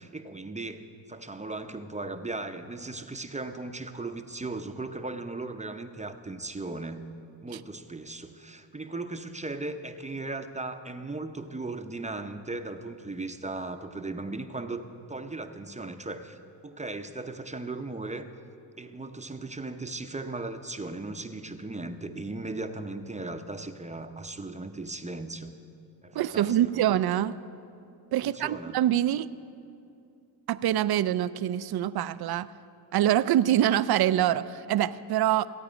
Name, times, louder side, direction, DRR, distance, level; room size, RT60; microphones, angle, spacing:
voice 1, 0.0-7.1 7.4-16.4 16.6-18.3 18.8-25.5 26.0-26.8 28.2-28.8, right 2 dB, 15° right, 7 dB, 0.7 m, -37 dB
voice 2, 26.1-27.3 28.1-29.3 30.5-32.5 32.9-35.5, right 12 dB, 50° right, 15 dB, 0.5 m, -25 dB
16.0 x 8.8 x 5.1 m, 2.5 s
supercardioid pair, 60°, 50 cm